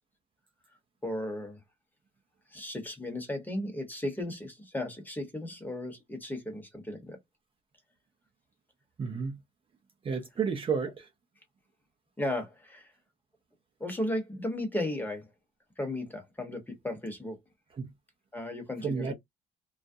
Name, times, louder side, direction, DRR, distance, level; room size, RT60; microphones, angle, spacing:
voice 1, 1.0-1.6 2.5-7.2 12.2-12.9 13.8-15.3 15.8-17.4 18.3-19.1, left 1 dB, 10° left, 1.0 m, -35 dB
voice 2, 9.0-9.4 10.0-11.1 17.7-17.9 18.8-19.1, right 6 dB, 30° right, 0.6 m, -31 dB
2.3 x 2.1 x 2.6 m
cardioid pair, 110°, 17 cm